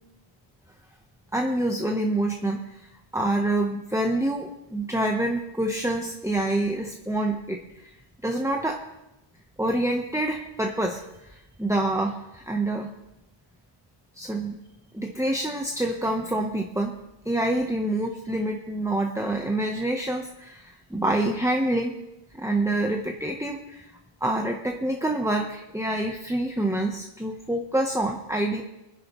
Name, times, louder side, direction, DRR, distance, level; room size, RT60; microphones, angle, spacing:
voice 1, 1.3-2.6 3.1-7.8 8.2-8.8 9.6-12.9 14.2-14.6 14.9-16.9 17.3-21.9 22.4-23.9 24.2-28.6, right 1 dB, 5° right, 2 dB, 0.7 m, -27 dB
24.0 x 11.0 x 3.1 m, 0.92 s
omnidirectional pair, 1.1 m